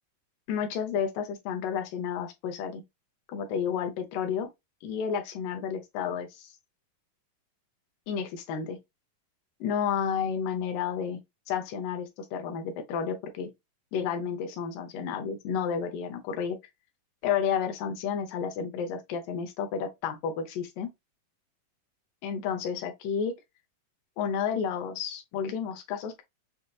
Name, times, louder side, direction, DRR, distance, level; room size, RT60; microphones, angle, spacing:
voice 1, 0.5-2.8 3.3-4.5 4.8-6.5 8.1-8.8 9.6-11.2 11.5-13.5 13.9-16.6 17.2-20.9 22.2-23.3 24.2-26.2, left 7 dB, 75° left, 2.3 m, -31 dB
6.5 x 2.8 x 2.3 m
omnidirectional pair, 4.1 m